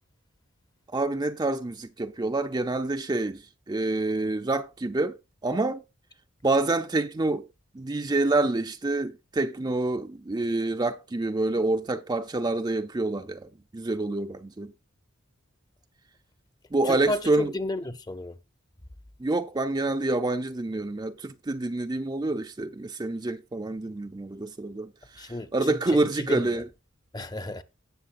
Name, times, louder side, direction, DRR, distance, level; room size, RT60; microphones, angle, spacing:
voice 1, 0.9-3.4 3.7-5.2 5.4-5.8 6.4-7.5 7.7-14.7 16.7-17.5 19.2-26.7, right 2 dB, 20° right, 0.5 m, -27 dB
voice 2, 16.8-18.4 25.2-26.5 27.1-27.6, left 2 dB, 20° left, 0.7 m, -32 dB
17.5 x 6.6 x 2.5 m
head